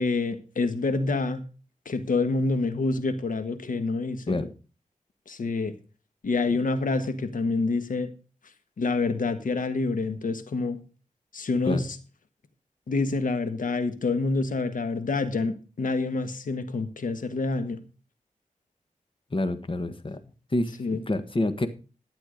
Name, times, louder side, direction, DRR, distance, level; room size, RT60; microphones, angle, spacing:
voice 1, 0.0-1.4 1.8-4.4 5.3-5.8 6.2-8.1 8.8-10.8 11.3-12.0 12.9-17.8 20.8-21.0, left 3 dB, 85° left, 10 dB, 1.4 m, -27 dB
voice 2, 19.3-20.2 20.5-21.7, left 2 dB, 40° left, 10 dB, 1.5 m, -28 dB
12.0 x 7.9 x 5.1 m, 0.35 s
wide cardioid pair, 60°, 13 cm